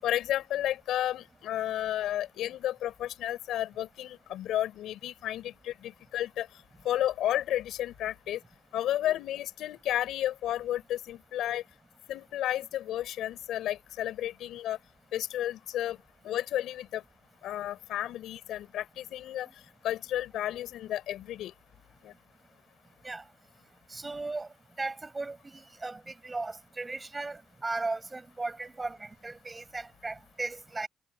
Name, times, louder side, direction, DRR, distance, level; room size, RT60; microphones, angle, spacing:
voice 1, 0.0-6.5 6.8-8.4 8.7-11.6 12.1-14.8 15.1-16.0 16.2-17.0 17.4-19.5 19.8-21.5 22.0-22.1, left 12 dB, 80° left, 5.0 m, -32 dB
voice 2, 23.9-24.5 24.8-30.9, right 3 dB, 20° right, 7.1 m, -36 dB
cardioid pair, 90°, 0 cm